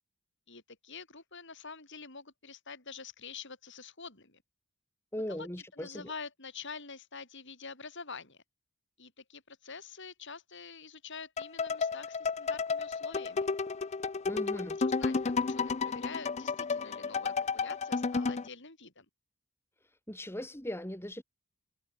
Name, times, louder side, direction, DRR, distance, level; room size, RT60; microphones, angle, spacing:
voice 1, 0.5-4.4 5.3-5.5 5.7-8.4 9.0-13.5 14.3-14.4 14.8-19.1, left 5 dB, 55° left, 7.1 m, -46 dB
voice 2, 5.1-6.1 14.3-14.8 20.1-21.2, left 1 dB, 10° left, 3.6 m, -39 dB
sound 1, 11.4-18.5, left 4 dB, 30° left, 0.5 m, -32 dB
head